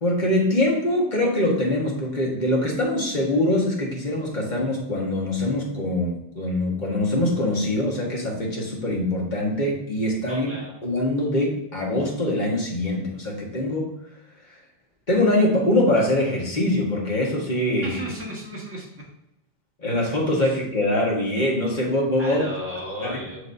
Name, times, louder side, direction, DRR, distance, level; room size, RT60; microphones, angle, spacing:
voice 1, 0.0-10.5 10.8-13.9 15.1-18.0 19.8-22.4 23.0-23.2, left 1 dB, 45° left, -2 dB, 1.7 m, -23 dB
voice 2, 10.3-10.7 17.8-18.9 22.2-23.4, equal, 10° right, -5 dB, 1.8 m, -34 dB
7.0 x 6.3 x 2.7 m, 0.86 s
omnidirectional pair, 1.1 m